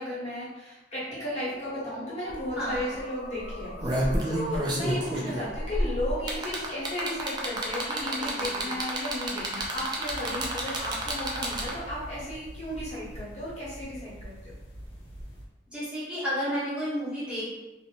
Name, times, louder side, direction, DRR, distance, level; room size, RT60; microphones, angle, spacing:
voice 1, 0.0-14.5, left 1 dB, 35° left, -9 dB, 1.0 m, -35 dB
sound 1, 1.1-8.8, left 3 dB, 55° left, 0.3 m, -45 dB
sound 2, 2.3-2.4 2.7-3.0 3.5-11.9 13.1-13.2, right 1 dB, 25° right, 0.3 m, -30 dB
sound 3, 10.1-15.4, equal, 90° left, 0.7 m, -44 dB
voice 2, 15.7-17.5, equal, 5° right, -11 dB, 0.7 m, -31 dB
2.5 x 2.1 x 2.9 m, 1.1 s
head